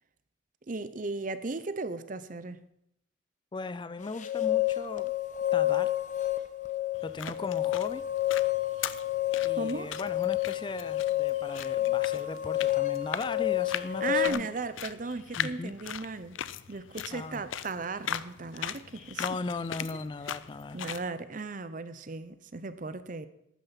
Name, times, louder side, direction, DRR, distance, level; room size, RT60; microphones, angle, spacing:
voice 1, 0.7-2.6 9.5-9.9 14.0-16.4 16.7-19.3 19.9-20.0 20.7-23.3, right 3 dB, 45° right, 0.7 m, -36 dB
voice 2, 3.5-5.1 5.5-5.9 7.0-8.0 9.4-14.5 15.4-15.7 17.1-17.4 19.2-20.8, left 3 dB, 25° left, 0.3 m, -38 dB
sound 1, 4.0-14.3, left 14 dB, 40° left, 0.8 m, -29 dB
sound 2, 6.9-21.1, left 9 dB, 85° left, 0.5 m, -40 dB
12.5 x 9.1 x 5.8 m
head